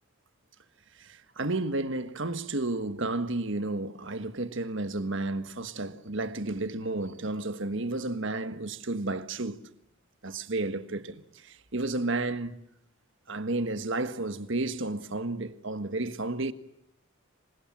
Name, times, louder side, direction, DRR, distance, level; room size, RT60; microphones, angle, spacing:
voice 1, 0.9-9.6 10.2-12.6 13.3-16.5, right 2 dB, 60° right, 1.5 m, -32 dB
27.5 x 25.0 x 7.4 m
head